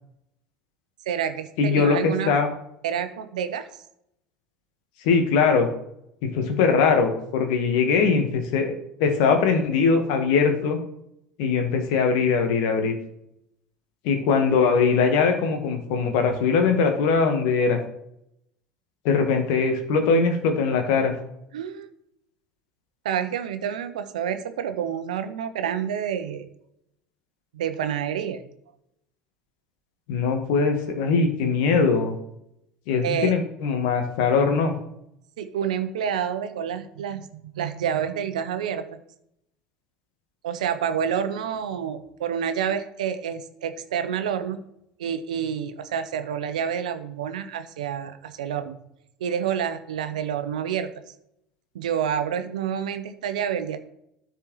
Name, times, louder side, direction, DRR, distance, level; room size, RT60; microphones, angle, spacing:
voice 1, 1.1-2.3 2.8-3.7 21.5-21.9 23.0-26.5 27.5-28.4 33.0-33.3 35.4-39.0 40.4-44.6 45.0-48.8 49.2-50.9 51.7-53.8, right 8 dB, 75° right, 10 dB, 0.8 m, -28 dB
voice 2, 1.6-2.5 5.0-5.7 6.2-8.7 9.0-10.8 11.4-12.9 14.0-17.8 19.0-21.2 30.1-32.2 32.9-34.7, left 5 dB, 65° left, 5 dB, 1.5 m, -21 dB
13.0 x 4.6 x 3.2 m, 0.78 s
figure-of-eight pair, 70°, 4 cm